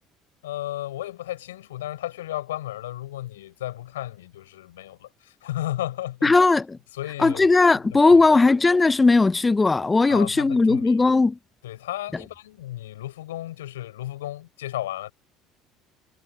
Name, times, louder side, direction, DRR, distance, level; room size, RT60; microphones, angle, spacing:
voice 1, 0.4-6.4 6.9-7.5 7.9-8.4 10.1-11.1 11.6-15.1, left 14 dB, 80° left, 5.4 m, -34 dB
voice 2, 6.2-6.8 7.2-11.3, left 3 dB, 20° left, 0.8 m, -18 dB
hypercardioid pair, 65°, 0 cm